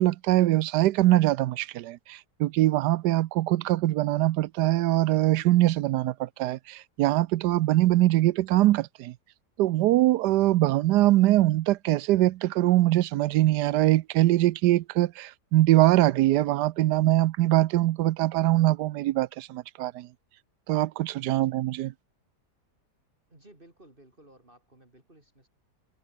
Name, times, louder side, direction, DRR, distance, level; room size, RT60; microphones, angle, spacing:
voice 1, 0.0-9.1 9.6-20.1 20.7-21.9, right 15 dB, 80° right, 1.2 m, -23 dB
voice 2, 23.3-25.5, right 1 dB, 30° right, 4.3 m, -56 dB
omnidirectional pair, 1.8 m